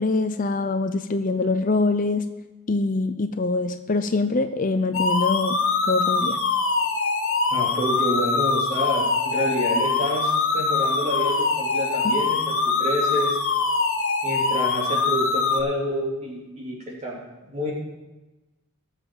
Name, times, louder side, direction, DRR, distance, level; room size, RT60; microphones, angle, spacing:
voice 1, 0.0-2.2 2.7-5.6 5.9-6.4 12.0-12.1, left 3 dB, 40° left, 9 dB, 0.5 m, -24 dB
sound 1, 4.9-15.6, left 4 dB, 65° left, 1.4 m, -23 dB
voice 2, 7.5-13.4 14.2-17.2 17.5-17.7, equal, 30° right, -3 dB, 3.2 m, -28 dB
19.5 x 7.3 x 3.9 m, 1.1 s
head